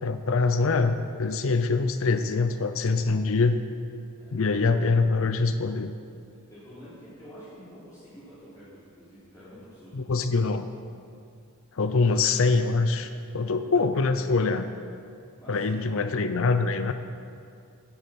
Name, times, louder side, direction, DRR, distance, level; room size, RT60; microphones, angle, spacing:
voice 1, 0.0-3.6 4.3-5.9 9.9-10.7 11.8-14.7 15.5-16.9, left 4 dB, 65° left, 10 dB, 0.6 m, -24 dB
voice 2, 4.2-4.7 6.3-10.1 15.4-15.9, equal, 15° left, -13 dB, 3.6 m, -48 dB
14.5 x 8.5 x 5.9 m, 2.3 s
head